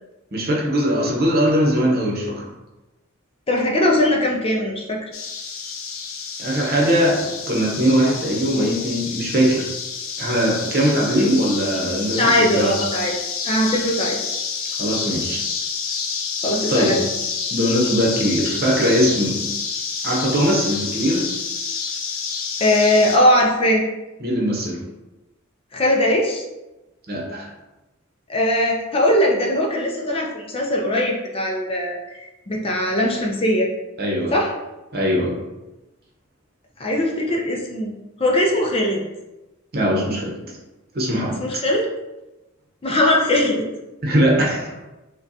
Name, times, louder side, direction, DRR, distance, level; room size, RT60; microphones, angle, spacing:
voice 1, 0.3-2.5 6.4-9.7 10.2-12.7 14.8-15.4 16.7-17.0 17.5-19.5 20.0-21.3 24.2-24.8 27.1-27.5 34.0-34.4 34.9-35.4 39.7-40.4 40.9-41.4 44.0-44.8, equal, 50° right, -2 dB, 0.8 m, -20 dB
voice 2, 3.5-5.1 12.2-13.1 13.4-14.4 16.4-17.1 22.6-23.8 25.7-26.4 28.3-33.7 34.3-34.5 36.8-37.9 38.2-39.0 41.3-41.9 42.8-43.7, left 1 dB, 30° left, -1 dB, 0.5 m, -20 dB
sound 1, 5.1-23.2, left 5 dB, 75° left, 0.6 m, -28 dB
5.0 x 2.3 x 2.7 m, 1.0 s
head